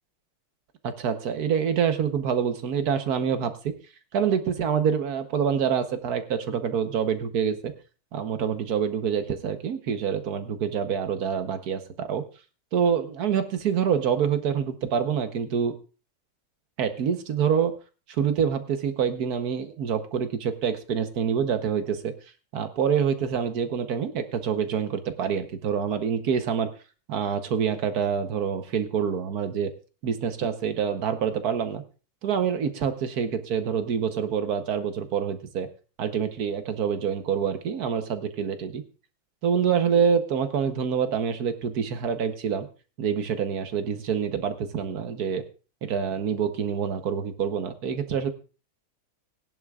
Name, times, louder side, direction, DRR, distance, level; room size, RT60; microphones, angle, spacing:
voice 1, 0.8-3.7 4.1-7.7 8.1-12.2 12.7-15.7 16.8-17.7 18.1-22.1 22.5-26.7 27.1-29.7 30.0-31.8 32.2-35.7 36.0-38.8 39.4-42.7 43.0-45.4 45.8-48.3, right 7 dB, 55° right, 9 dB, 1.2 m, -26 dB
19.0 x 10.5 x 2.3 m, 0.34 s
omnidirectional pair, 2.3 m